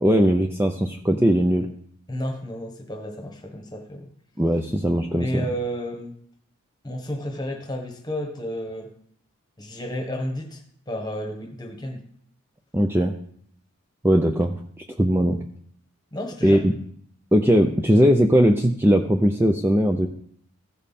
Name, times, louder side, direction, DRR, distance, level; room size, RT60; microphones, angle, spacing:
voice 1, 0.0-1.7 4.4-5.3 12.7-13.1 14.0-14.5 15.0-15.4 16.4-16.7 17.3-20.1, equal, 10° right, 3 dB, 0.5 m, -19 dB
voice 2, 2.1-4.1 5.1-6.1 6.8-8.9 9.6-12.0 16.1-16.7, equal, 20° left, 4 dB, 1.3 m, -32 dB
15.5 x 5.4 x 4.2 m, 0.64 s
head